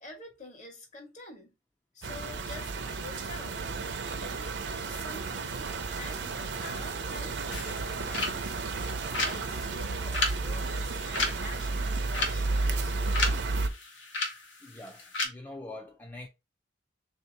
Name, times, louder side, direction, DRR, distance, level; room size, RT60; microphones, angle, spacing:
voice 1, 0.0-1.5 1.9-3.6 4.2-8.5 9.2-13.5, left 1 dB, 40° left, 1.2 m, -47 dB
sound 1, 2.0-13.7, right 3 dB, 65° right, 0.5 m, -32 dB
sound 2, 7.5-15.3, left 3 dB, 85° left, 1.2 m, -35 dB
voice 2, 14.6-16.3, left 2 dB, 10° left, 0.4 m, -44 dB
3.3 x 2.7 x 4.4 m
head